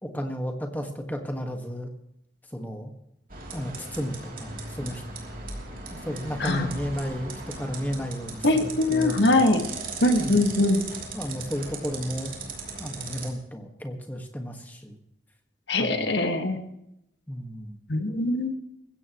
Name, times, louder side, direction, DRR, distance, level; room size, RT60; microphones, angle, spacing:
voice 1, 0.0-1.9 2.5-2.9 3.5-5.0 5.9-9.6 10.2-10.5 11.1-12.3 12.8-15.0 15.8-16.1 17.3-17.8, equal, 10° left, 3 dB, 1.6 m, -33 dB
sound 1, 3.3-13.3, right 3 dB, 45° right, 3.0 m, -38 dB
voice 2, 8.4-9.6 10.0-10.8 15.7-16.6 17.9-18.5, left 2 dB, 75° left, 5 dB, 1.7 m, -22 dB
21.0 x 16.0 x 3.1 m, 0.82 s
head